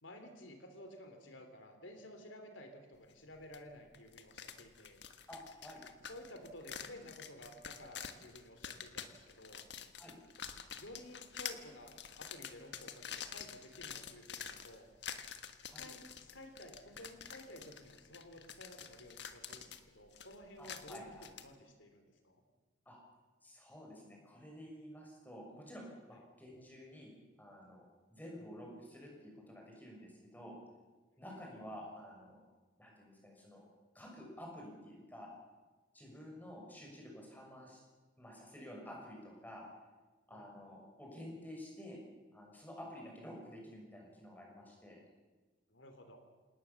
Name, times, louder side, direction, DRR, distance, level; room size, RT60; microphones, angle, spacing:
voice 1, 0.0-5.0 6.1-9.6 10.8-14.9 15.6-22.4 26.1-26.2 31.2-31.3 40.3-40.4 45.7-46.2, left 1 dB, 90° left, 6 dB, 3.4 m, -53 dB
sound 1, 3.5-3.6 3.9-21.5, left 8 dB, 65° left, 1.6 m, -48 dB
voice 2, 5.3-5.8 10.0-10.1 15.7-15.9 20.6-21.3 22.8-23.0 23.4-27.1 27.4-30.6 31.2-32.4 32.8-33.6 33.9-35.3 35.9-37.8 38.2-39.6 40.3-42.0 42.3-45.0, equal, 10° left, -1 dB, 6.7 m, -51 dB
27.0 x 19.0 x 7.3 m, 1.3 s
head